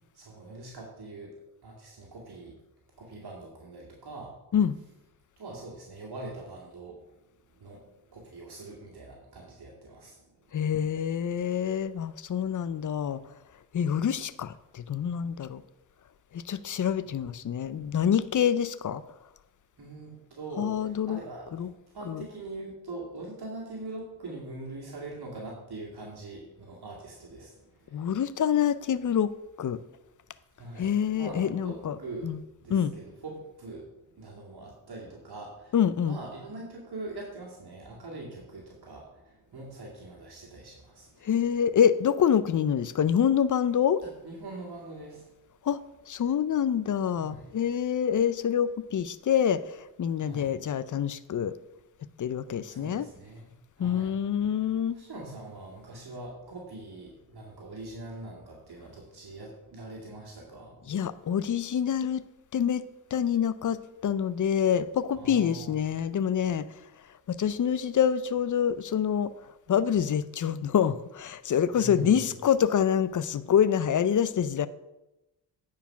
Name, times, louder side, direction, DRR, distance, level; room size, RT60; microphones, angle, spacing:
voice 1, 0.1-1.3 1.6-2.5 3.0-4.3 5.4-7.2 7.5-10.6 19.8-28.1 30.6-35.8 36.0-41.3 44.0-45.3 47.1-47.5 50.2-50.5 52.7-53.5 53.8-54.2 54.9-61.1 65.1-65.8 71.8-72.3, right 2 dB, 55° right, -3 dB, 2.2 m, -43 dB
voice 2, 10.5-13.2 13.7-15.6 16.3-19.0 20.6-21.2 21.5-21.7 22.1-22.2 27.9-29.3 29.6-29.8 30.8-32.0 32.2-32.4 32.7-32.9 35.7-36.2 41.2-44.0 45.6-45.8 46.1-51.5 52.2-53.1 53.8-55.0 60.9-62.2 62.5-62.8 63.1-66.7 67.3-69.3 69.7-74.7, left 8 dB, 45° left, 16 dB, 0.6 m, -26 dB
9.2 x 4.9 x 5.7 m, 0.97 s
cardioid pair, 65°, 46 cm